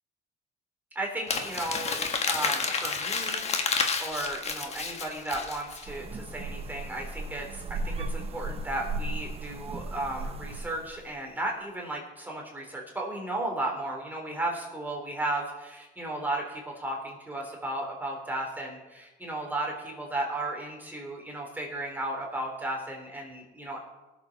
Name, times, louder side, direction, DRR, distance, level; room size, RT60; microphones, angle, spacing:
voice 1, 0.9-2.0 2.3-3.4 4.0-23.8, right 1 dB, 10° right, -1 dB, 3.1 m, -34 dB
Crumpling crinkling, 1.3-5.9, left 5 dB, 40° left, 1.4 m, -30 dB
sound 1, 5.9-11.2, right 2 dB, 35° right, 0.7 m, -36 dB
18.5 x 7.4 x 4.0 m, 1.1 s
cardioid pair, 110°, 17 cm